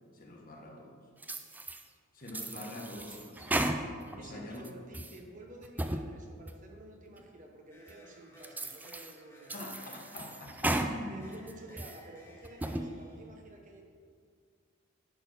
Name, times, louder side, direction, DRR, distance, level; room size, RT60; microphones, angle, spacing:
voice 1, 0.1-0.9 2.1-3.7 4.1-4.6 9.5-11.2, left 1 dB, 45° left, 1 dB, 1.3 m, -45 dB
sound 1, 1.2-1.8 2.3-4.2 4.6-5.2 5.6-6.0 6.5-6.6 7.2-7.3 7.9-8.0 8.4-9.1 9.5-10.9 11.3-12.0 12.4-12.9, right 1 dB, 10° right, 0.4 m, -35 dB
voice 2, 4.2-9.5 9.8-10.0 11.1-13.8, right 1 dB, 40° right, 1 dB, 1.0 m, -51 dB
sound 2, 7.7-13.2, right 1 dB, 15° left, 2.2 m, -58 dB
11.0 x 4.2 x 6.6 m, 2.1 s
head